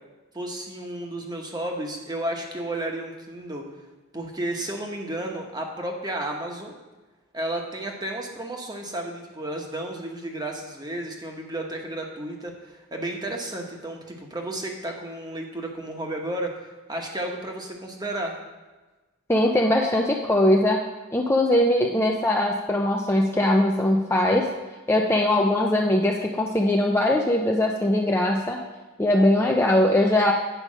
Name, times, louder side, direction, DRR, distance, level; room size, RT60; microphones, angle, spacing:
voice 1, 0.3-3.7 4.1-6.8 7.3-18.4, right 1 dB, 20° right, 1 dB, 1.1 m, -32 dB
voice 2, 19.3-20.8 21.1-24.4 24.9-28.6 29.0-30.3, left 1 dB, 10° left, 0 dB, 0.5 m, -21 dB
9.1 x 5.0 x 6.2 m, 1.2 s
head